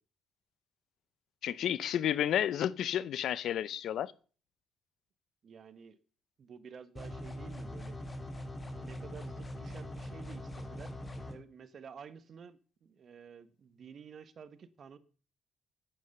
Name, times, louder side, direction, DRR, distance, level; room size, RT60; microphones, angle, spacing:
voice 1, 1.4-4.1, left 10 dB, 70° left, 0.6 m, -31 dB
voice 2, 5.4-6.0 6.4-8.0 8.8-10.9 11.2-15.0, right 6 dB, 55° right, 1.3 m, -51 dB
sound 1, 7.0-11.3, left 1 dB, 25° left, 2.5 m, -42 dB
9.4 x 9.3 x 6.6 m
supercardioid pair, 70°, 0 cm